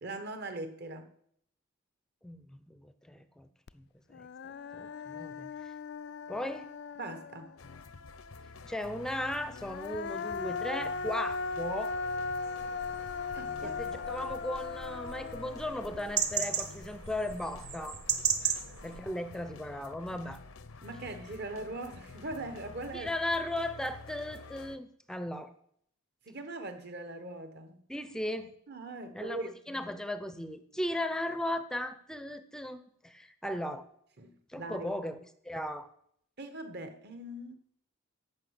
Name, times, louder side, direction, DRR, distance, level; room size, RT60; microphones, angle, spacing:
voice 1, 0.0-1.1 7.0-7.5 13.3-14.1 18.4-18.7 20.8-23.1 26.3-27.8 28.7-29.8 34.2-34.9 36.4-37.6, right 2 dB, 50° right, 1.3 m, -41 dB
voice 2, 2.2-3.5 3.7-3.8 4.1-4.3 4.7-5.7 6.3-6.7 8.6-11.9 13.6-18.0 18.8-20.4 22.9-25.5 27.9-28.5 29.1-29.4 29.7-33.9 34.5-35.2 35.4-35.9, left 1 dB, 5° left, 0.6 m, -36 dB
Human voice, 3.7-3.8 4.1-7.8 9.5-16.7, left 4 dB, 50° left, 0.4 m, -38 dB
sound 1, 7.6-24.8, left 4 dB, 75° left, 0.8 m, -49 dB
sound 2, 12.4-19.0, right 8 dB, 90° right, 1.3 m, -36 dB
14.5 x 5.7 x 8.0 m
head